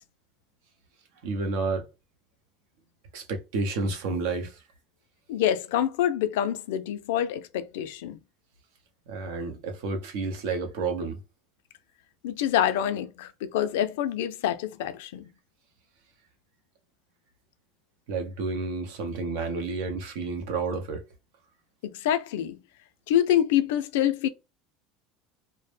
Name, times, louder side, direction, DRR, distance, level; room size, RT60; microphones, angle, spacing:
voice 1, 1.2-1.9 3.1-4.6 9.1-11.2 18.1-21.0, right 3 dB, 75° right, 0.6 m, -30 dB
voice 2, 5.3-8.2 12.2-15.3 21.8-22.6 23.1-24.3, left 11 dB, 85° left, 0.3 m, -26 dB
2.0 x 2.0 x 3.2 m
supercardioid pair, 120°, 0 cm